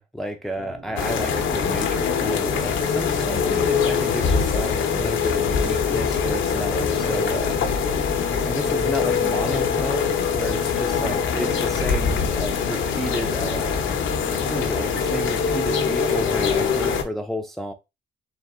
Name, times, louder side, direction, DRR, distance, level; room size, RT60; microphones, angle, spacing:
voice 1, 0.0-8.2 8.5-13.9 14.5-17.7, equal, ahead, 0.6 m, -31 dB
sound 1, 0.5-9.1, right 4 dB, 70° right, 2.3 m, -44 dB
sound 2, 1.0-17.0, left 6 dB, 75° left, 0.9 m, -23 dB
4.1 x 2.8 x 3.5 m
cardioid pair, 90°, 20 cm